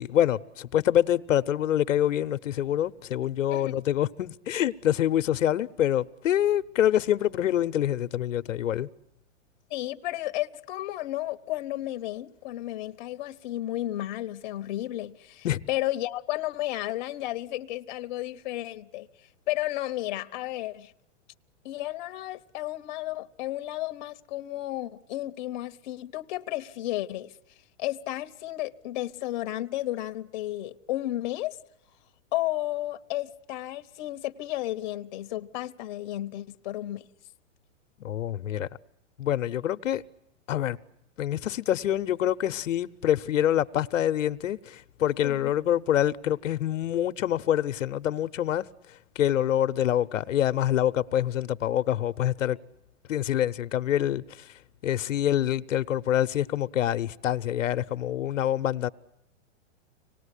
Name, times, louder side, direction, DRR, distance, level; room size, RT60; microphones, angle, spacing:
voice 1, 0.0-8.9 15.4-15.7 38.0-38.7 39.2-40.0 40.5-40.8 41.2-48.6 49.2-52.6 53.1-54.2 54.8-58.9, left 11 dB, 85° left, 0.9 m, -26 dB
voice 2, 9.7-19.1 19.5-20.9 21.6-27.3 27.8-31.6 32.3-37.1 45.2-45.5, left 15 dB, 35° left, 0.9 m, -33 dB
25.5 x 19.0 x 9.9 m
hypercardioid pair, 160°, 38 cm